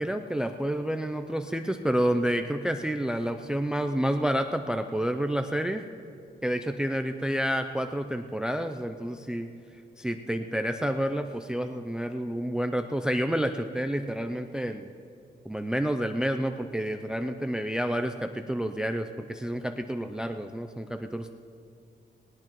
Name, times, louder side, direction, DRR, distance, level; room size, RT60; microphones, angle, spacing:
voice 1, 0.0-5.9 6.4-9.5 10.0-14.9 15.5-21.3, equal, 5° right, 7 dB, 0.4 m, -29 dB
19.5 x 18.5 x 3.0 m, 2.5 s
wide cardioid pair, 170°, 17 cm